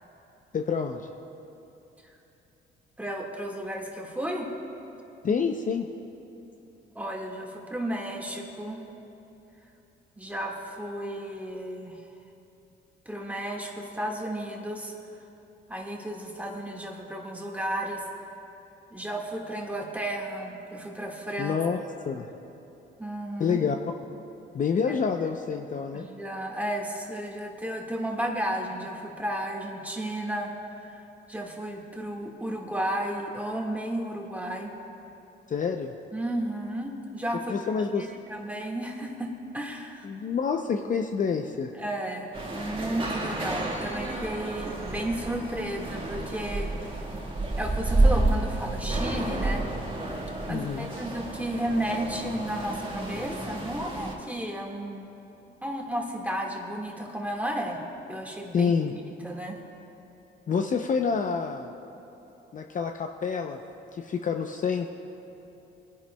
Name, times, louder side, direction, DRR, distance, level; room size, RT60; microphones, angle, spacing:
voice 1, 0.5-1.1 5.2-5.9 21.4-21.8 22.1-22.3 23.4-23.8 24.5-26.1 35.5-35.9 37.5-38.1 40.0-41.7 50.5-50.9 58.5-58.9 60.5-61.7 62.5-63.6 63.9-64.9, left 6 dB, 40° left, 4 dB, 0.6 m, -27 dB
voice 2, 3.0-4.5 6.9-8.8 10.2-12.0 13.0-14.9 15.7-18.1 18.9-21.6 23.0-23.6 24.8-25.0 25.9-34.7 36.1-37.5 37.9-40.1 41.7-46.7 47.6-49.7 50.5-55.1 55.6-57.8 58.1-58.7 59.2-59.6, right 1 dB, 10° right, 0 dB, 1.7 m, -33 dB
sound 1, 42.3-54.1, right 2 dB, 25° right, 1.6 m, -30 dB
21.5 x 10.5 x 2.2 m, 3.0 s
cardioid pair, 90°, 20 cm